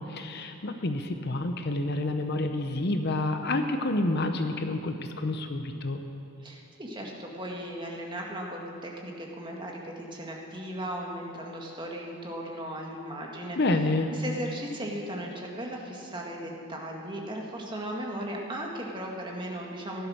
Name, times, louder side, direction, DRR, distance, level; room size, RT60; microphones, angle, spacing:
voice 1, 0.0-6.0 13.6-14.1, left 2 dB, 50° left, 7 dB, 0.8 m, -28 dB
voice 2, 6.4-20.1, right 1 dB, 20° right, -1 dB, 1.7 m, -37 dB
15.5 x 12.0 x 6.4 m, 2.6 s
head